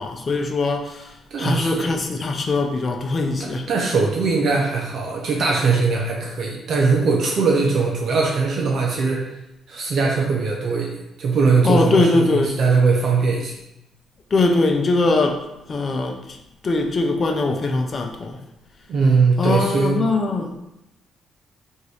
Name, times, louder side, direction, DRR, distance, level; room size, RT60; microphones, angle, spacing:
voice 1, 0.0-3.7 11.6-12.6 14.3-16.4 16.6-18.4 19.4-20.6, left 3 dB, 40° left, 0.7 m, -21 dB
voice 2, 1.3-2.0 3.4-9.3 9.7-13.5 18.9-20.0, right 4 dB, 60° right, 0.8 m, -20 dB
4.0 x 2.7 x 4.8 m
cardioid pair, 90°, 0 cm